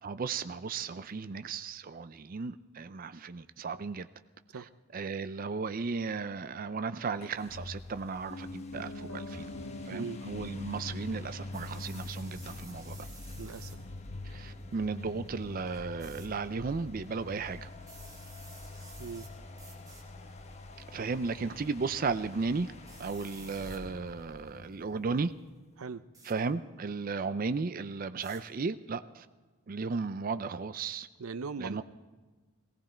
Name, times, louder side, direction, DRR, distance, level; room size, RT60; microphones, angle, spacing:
voice 1, 0.0-4.1 4.9-9.5 9.9-13.0 14.2-17.7 20.9-22.7 23.0-25.3 26.3-29.3 29.7-31.1 31.6-31.8, right 4 dB, 40° right, 12 dB, 0.4 m, -35 dB
sound 1, 7.2-25.7, left 2 dB, 30° left, 1.1 m, -45 dB
Piano, 8.3-18.3 18.6-18.7, left 2 dB, 60° left, 1.3 m, -47 dB
voice 2, 9.9-10.2 13.4-13.8 19.0-19.3 25.8-26.0 31.2-31.8, right 5 dB, 90° right, 15 dB, 0.6 m, -39 dB
sound 2, 11.5-13.8 16.0-16.3 17.8-19.3 19.6-20.0 20.8-21.2 22.9-23.8 26.1-26.4 28.2-28.4, right 3 dB, 15° right, 2.5 m, -53 dB
19.5 x 17.0 x 4.4 m, 1.3 s
head